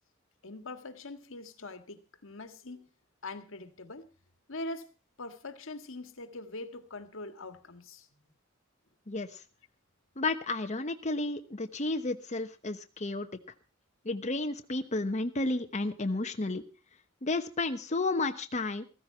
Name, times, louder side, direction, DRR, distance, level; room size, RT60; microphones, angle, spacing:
voice 1, 0.4-2.9 3.2-4.1 4.5-4.9 5.2-8.1, left 2 dB, 65° left, 1.7 m, -43 dB
voice 2, 9.1-9.4 10.2-13.3 14.0-16.6 17.2-18.8, left 2 dB, 35° left, 1.1 m, -32 dB
15.0 x 15.0 x 4.5 m
head